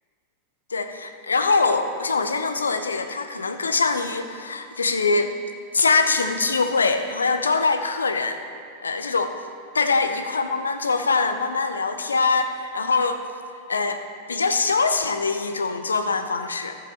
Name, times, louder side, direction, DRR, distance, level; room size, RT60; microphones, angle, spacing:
voice 1, 0.7-5.3 5.7-8.4 8.8-9.4 9.7-13.2 13.7-14.0 14.3-16.8, left 4 dB, 75° left, 8 dB, 0.6 m, -23 dB
14.5 x 7.0 x 4.0 m, 2.4 s
figure-of-eight pair, 90°, 0 cm